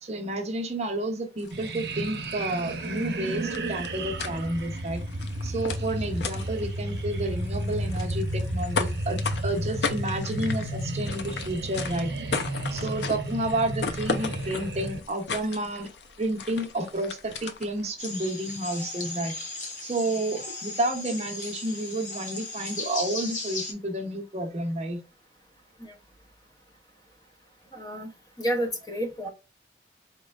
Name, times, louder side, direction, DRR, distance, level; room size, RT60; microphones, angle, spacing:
voice 1, 0.0-5.0 5.4-12.1 12.7-15.9 16.2-19.3 19.8-25.0, right 1 dB, 35° right, 0.7 m, -30 dB
sound 1, 1.4-17.9, left 5 dB, 80° left, 0.5 m, -37 dB
sound 2, 1.5-15.0, right 1 dB, 75° right, 0.7 m, -32 dB
sound 3, 18.0-23.7, left 2 dB, 45° left, 1.0 m, -36 dB
voice 2, 27.7-28.1 28.4-29.3, equal, 20° left, 0.7 m, -30 dB
4.2 x 3.0 x 2.3 m
head